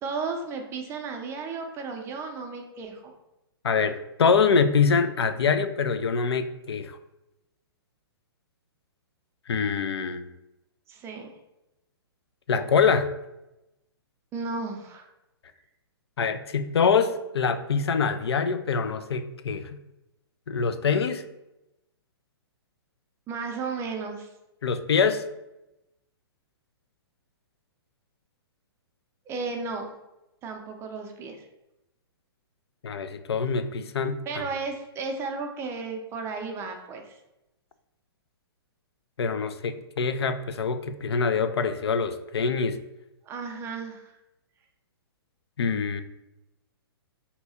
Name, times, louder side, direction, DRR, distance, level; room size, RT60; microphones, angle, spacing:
voice 1, 0.0-3.1 10.9-11.3 14.3-15.1 23.3-24.3 29.3-29.9 30.4-31.4 34.3-37.2 43.2-44.1, right 4 dB, 20° right, 3 dB, 0.5 m, -34 dB
voice 2, 3.6-7.0 9.5-10.3 12.5-13.1 16.2-19.6 20.5-21.2 24.6-25.2 32.8-34.4 39.2-42.8 45.6-46.0, left 5 dB, 80° left, 10 dB, 0.4 m, -24 dB
2.7 x 2.3 x 4.1 m, 0.93 s
hypercardioid pair, 125°, 13 cm